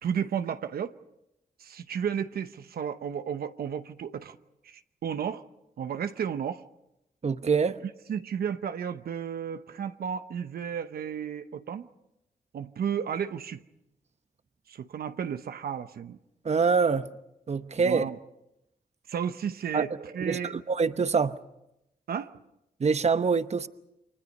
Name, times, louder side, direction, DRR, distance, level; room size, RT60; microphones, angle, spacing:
voice 1, 0.0-0.9 1.6-4.4 4.6-5.4 5.8-6.6 7.8-11.9 12.5-13.6 14.7-16.2 17.8-18.2 19.1-20.5 22.1-22.3, right 8 dB, 80° right, 0.9 m, -33 dB
voice 2, 7.2-7.8 16.4-17.1 17.5-18.0 19.7-19.8 20.2-21.4 22.8-23.7, right 5 dB, 45° right, 1.0 m, -25 dB
29.5 x 24.0 x 5.4 m
cardioid pair, 75°, 16 cm